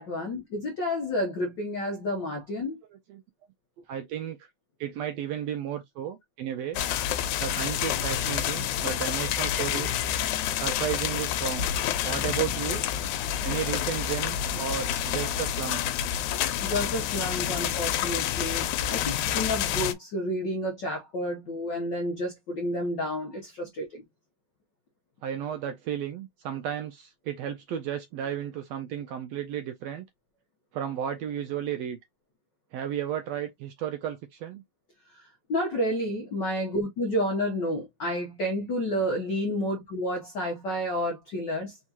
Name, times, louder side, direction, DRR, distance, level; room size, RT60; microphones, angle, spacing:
voice 1, 0.0-2.8 16.3-24.0 35.1-35.2 35.5-41.8, left 1 dB, 70° left, 1.0 m, -30 dB
voice 2, 3.9-4.5 4.8-6.8 7.4-10.0 10.6-11.7 12.0-12.8 13.4-15.8 23.6-23.7 25.2-30.0 30.7-32.0 32.7-34.6, right 9 dB, 80° right, 1.6 m, -33 dB
sound 1, 6.7-19.9, left 10 dB, 90° left, 2.1 m, -28 dB
4.7 x 3.6 x 2.8 m
omnidirectional pair, 3.4 m